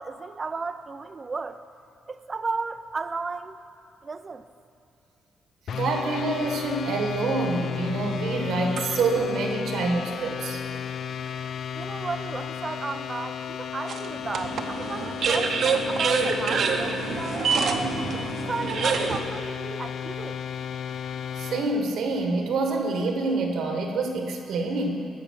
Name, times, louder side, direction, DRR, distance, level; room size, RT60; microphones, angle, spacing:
voice 1, 0.0-1.6 2.1-3.6 4.0-4.5 11.7-17.5 18.1-20.4, right 4 dB, 35° right, 11 dB, 0.5 m, -34 dB
sound 1, 5.7-21.7, left 8 dB, 60° left, 0.3 m, -34 dB
voice 2, 5.7-10.6 21.4-25.1, right 3 dB, 75° right, 3 dB, 1.4 m, -27 dB
sound 2, 7.6-9.3 10.0-10.1 13.9-19.2, right 5 dB, 60° right, 0.9 m, -27 dB
15.0 x 5.2 x 6.3 m, 2.6 s
cardioid pair, 90°, 0 cm